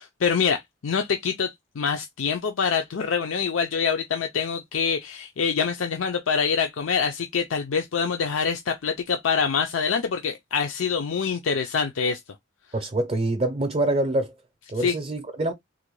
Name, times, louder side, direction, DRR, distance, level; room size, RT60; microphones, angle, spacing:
voice 1, 0.0-12.2 14.7-14.9, left 6 dB, 85° left, 0.5 m, -25 dB
voice 2, 12.7-14.3 14.7-15.5, right 2 dB, 35° right, 0.6 m, -25 dB
3.7 x 2.2 x 3.0 m
head